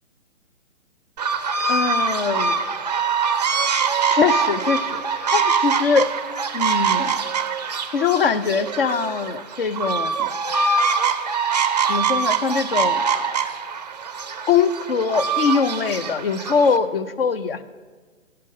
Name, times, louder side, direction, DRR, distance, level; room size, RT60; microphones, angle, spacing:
sound 1, 1.2-16.8, right 5 dB, 35° right, 0.4 m, -23 dB
voice 1, 1.7-2.6 4.1-5.0 5.3-6.1 6.5-7.1 7.7-10.3 11.9-13.0 14.5-17.6, left 5 dB, 45° left, 13 dB, 0.6 m, -22 dB
12.5 x 5.6 x 6.4 m, 1.4 s
figure-of-eight pair, 145°, 39 cm